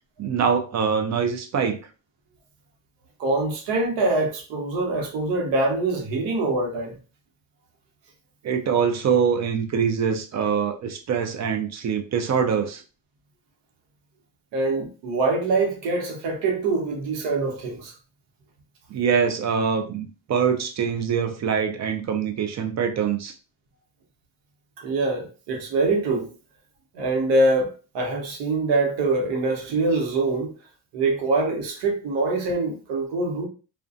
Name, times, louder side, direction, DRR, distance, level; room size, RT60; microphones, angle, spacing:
voice 1, 0.2-1.8 8.4-12.8 18.9-23.3, right 7 dB, 40° right, 0.5 m, -24 dB
voice 2, 3.2-6.9 14.5-17.9 24.8-26.3 26.9-30.5 30.9-33.5, right 2 dB, 85° right, 0.9 m, -24 dB
2.4 x 2.2 x 2.5 m
cardioid pair, 100°, 42 cm